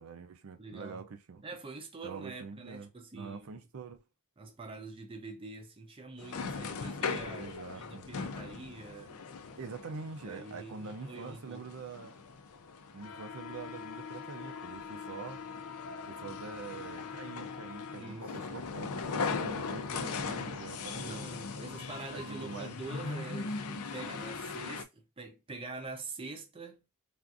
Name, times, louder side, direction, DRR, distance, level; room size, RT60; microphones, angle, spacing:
voice 1, 0.0-1.4 2.0-2.9 3.1-4.0 7.4-8.1 9.6-12.2 12.9-15.4 16.0-21.3 22.1-22.8, right 4 dB, 70° right, 0.5 m, -45 dB
voice 2, 0.6-1.0 1.4-3.5 4.4-9.2 10.2-11.6 18.0-18.3 20.9-26.9, right 3 dB, 25° right, 0.5 m, -45 dB
sound 1, 6.2-24.8, left 4 dB, 85° left, 0.5 m, -39 dB
3.5 x 2.5 x 2.4 m
head